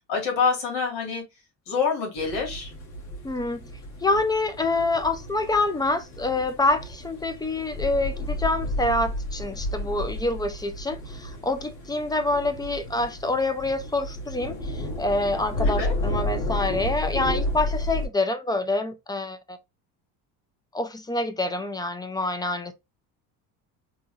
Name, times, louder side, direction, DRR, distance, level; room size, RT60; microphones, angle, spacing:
voice 1, 0.1-1.2 1.7-2.7 15.6-15.9, left 5 dB, 85° left, 2.1 m, -26 dB
sound 1, 2.2-18.1, left 1 dB, 45° left, 1.8 m, -32 dB
voice 2, 3.2-3.7 4.0-19.6 20.7-22.7, left 2 dB, 10° left, 0.3 m, -26 dB
3.8 x 2.7 x 3.0 m
cardioid pair, 125°, 40 cm